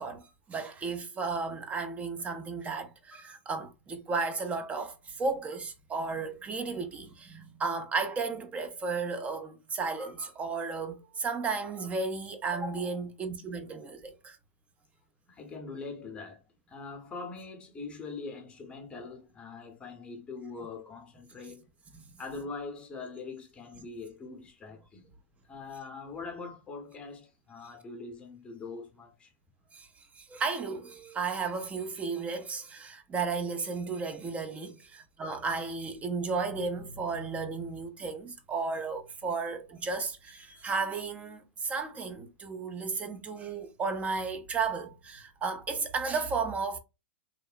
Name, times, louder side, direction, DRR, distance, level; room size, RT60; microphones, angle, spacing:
voice 1, 0.0-14.4 21.9-22.0 29.7-29.9 30.1-46.8, right 4 dB, 20° right, 0.5 m, -34 dB
voice 2, 15.3-21.7 22.2-25.1 25.5-29.3, left 4 dB, 15° left, 0.8 m, -42 dB
2.9 x 2.0 x 2.4 m
hypercardioid pair, 125°, 7 cm